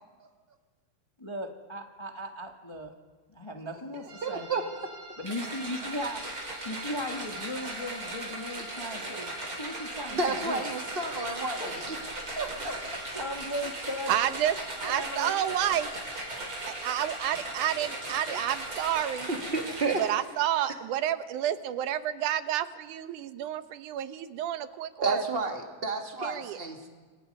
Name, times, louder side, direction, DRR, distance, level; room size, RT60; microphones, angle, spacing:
voice 1, 1.2-2.9 3.3-4.5 5.2-6.2 6.6-10.7 11.6-11.8 13.1-14.4 14.8-15.4, left 1 dB, 20° left, 2 dB, 0.7 m, -37 dB
sound 1, 4.1-19.0, right 2 dB, 60° right, 4.9 m, -46 dB
voice 2, 4.2-4.6 10.1-12.0 12.4-12.8 18.3-18.4 19.3-20.0 25.0-26.9, right 3 dB, 20° right, 3 dB, 1.9 m, -31 dB
sound 2, 5.3-20.4, right 1 dB, 40° right, 5.8 m, -38 dB
voice 3, 14.1-14.6 14.8-15.9 16.7-19.3 20.0-25.2 26.2-26.6, right 11 dB, 85° right, 11 dB, 2.4 m, -30 dB
29.5 x 25.5 x 5.5 m, 1.5 s
omnidirectional pair, 3.5 m